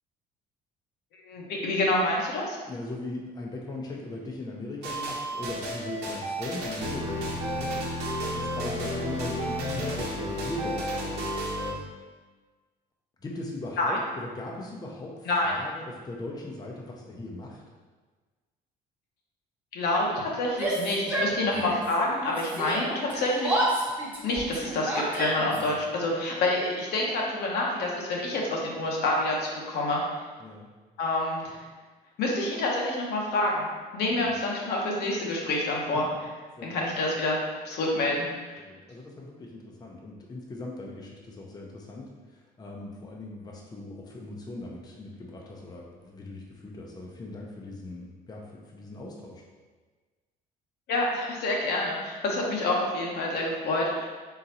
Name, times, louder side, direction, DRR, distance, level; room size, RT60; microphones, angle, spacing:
voice 1, 1.2-2.6 13.8-14.0 15.3-15.5 19.7-23.6 24.2-30.0 31.0-31.6 32.2-33.7 33.9-36.1 36.6-37.4 37.6-38.3 50.9-54.1, left 2 dB, 70° left, -2 dB, 1.0 m, -27 dB
voice 2, 2.7-11.4 13.2-17.6 21.4-21.8 25.5-25.8 30.4-30.7 34.1-34.4 36.6-36.8 38.6-49.4, left 2 dB, 25° left, -2 dB, 0.6 m, -39 dB
sound 1, 4.8-11.7, equal, 80° right, 0.9 m, -32 dB
Yell, 20.5-21.9 22.2-25.7, right 1 dB, 10° right, 1.1 m, -30 dB
3.9 x 3.7 x 2.8 m, 1.4 s
cardioid pair, 110°, 17 cm